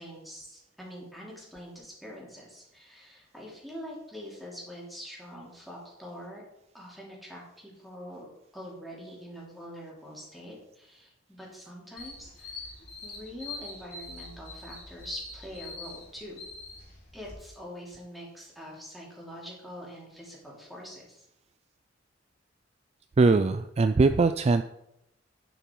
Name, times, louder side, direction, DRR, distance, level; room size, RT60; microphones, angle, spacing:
voice 1, 0.0-6.4 6.7-12.7 13.0-16.4 17.1-21.3, equal, ahead, -4 dB, 3.1 m, -44 dB
sound 1, 12.0-17.3, left 3 dB, 55° left, 3.8 m, -44 dB
voice 2, 23.2-24.6, right 3 dB, 35° right, 10 dB, 0.3 m, -21 dB
9.7 x 6.9 x 4.7 m, 0.82 s
head